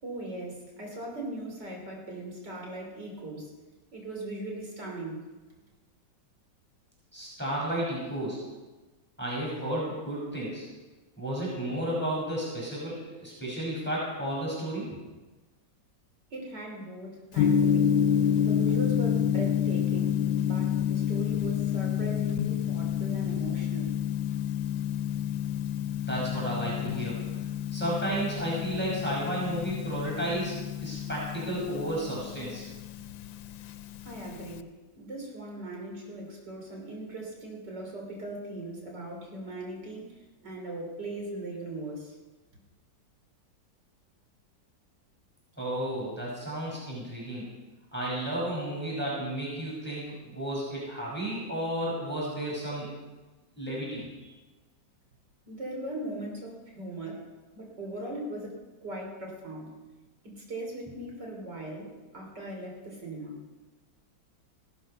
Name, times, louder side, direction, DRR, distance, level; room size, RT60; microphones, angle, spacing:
voice 1, 0.0-3.5 3.9-5.3 16.3-18.0 18.4-24.0 34.0-34.7 35.0-42.2 55.5-59.8 60.2-63.5, right 2 dB, 60° right, 0 dB, 4.4 m, -39 dB
voice 2, 7.1-8.4 9.2-10.6 11.2-14.9 26.1-27.2 27.7-32.6 45.6-47.5 47.9-52.9 53.6-54.3, right 1 dB, 5° left, -6 dB, 5.8 m, -32 dB
Gong, 17.4-34.6, left 9 dB, 85° left, 1.5 m, -29 dB
17.0 x 12.5 x 5.6 m, 1.2 s
omnidirectional pair, 2.0 m